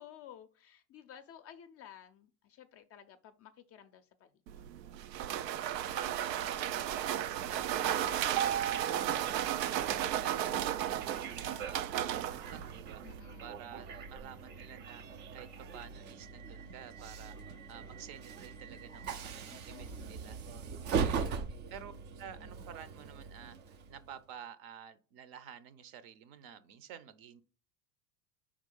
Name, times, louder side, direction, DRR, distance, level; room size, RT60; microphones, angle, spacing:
voice 1, 0.0-4.3 13.0-13.7 19.5-20.3 21.1-21.5, left 10 dB, 30° left, 9 dB, 0.5 m, -54 dB
sound 1, 4.5-13.2, right 11 dB, 85° right, 0.6 m, -34 dB
voice 2, 5.7-9.9 10.2-13.0 13.4-20.4 20.9-21.9 22.2-27.4, right 9 dB, 45° right, 15 dB, 0.7 m, -51 dB
Train, 6.9-24.1, right 6 dB, 25° right, 0.3 m, -41 dB
4.8 x 3.7 x 5.4 m, 0.39 s
hypercardioid pair, 90°, 49 cm